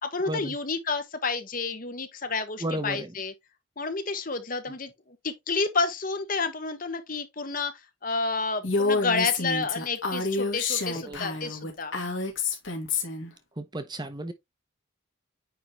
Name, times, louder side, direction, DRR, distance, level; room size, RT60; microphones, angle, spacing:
voice 1, 0.0-3.3 3.8-4.9 5.2-7.7 8.0-11.9, left 4 dB, 40° left, 1.2 m, -30 dB
voice 2, 2.6-3.1 11.0-11.2 13.6-14.3, right 1 dB, 20° right, 0.8 m, -33 dB
Female speech woman speaking, 8.6-13.3, left 4 dB, 70° left, 2.2 m, -28 dB
9.4 x 3.6 x 3.0 m
head